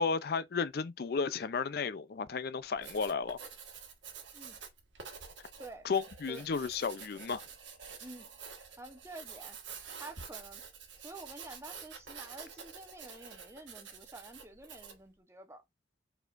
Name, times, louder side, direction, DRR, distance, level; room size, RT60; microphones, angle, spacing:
voice 1, 0.0-3.4 5.8-7.5, left 5 dB, 55° left, 0.4 m, -33 dB
Writing, 2.6-15.1, right 6 dB, 80° right, 1.3 m, -48 dB
voice 2, 5.6-5.9 6.3-6.5 8.0-8.3 8.8-9.6 10.0-10.6 11.0-15.6, right 2 dB, 15° right, 0.9 m, -49 dB
4.7 x 4.3 x 2.5 m
head